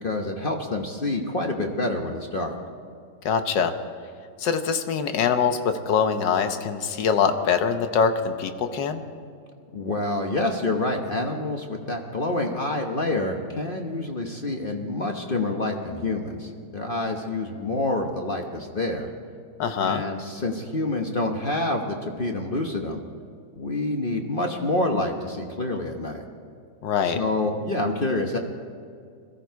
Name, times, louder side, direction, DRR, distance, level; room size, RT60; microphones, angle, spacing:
voice 1, 0.0-2.6 9.7-19.1 19.8-23.0 23.6-26.2 27.1-28.4, left 2 dB, 35° left, 3 dB, 1.0 m, -27 dB
voice 2, 3.2-3.7 4.4-9.0 19.6-20.0 26.8-27.2, left 6 dB, 75° left, 8 dB, 1.6 m, -23 dB
21.5 x 14.5 x 4.6 m, 2.3 s
omnidirectional pair, 2.0 m